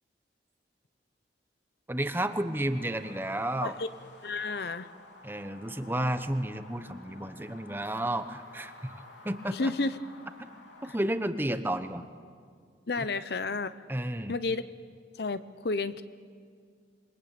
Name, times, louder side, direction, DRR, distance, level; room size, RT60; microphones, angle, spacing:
voice 1, 1.9-3.7 5.2-9.7 10.4-10.5 10.8-12.1 13.0-13.1 13.9-14.4, right 1 dB, 10° right, 9 dB, 0.9 m, -32 dB
sound 1, 2.3-11.1, left 2 dB, 85° left, 3.6 m, -52 dB
voice 2, 4.2-4.9 9.5-10.0 10.9-11.0 12.9-13.7 14.3-14.6 15.1-16.0, left 3 dB, 60° left, 13 dB, 0.7 m, -31 dB
27.5 x 22.0 x 8.8 m, 2.1 s
head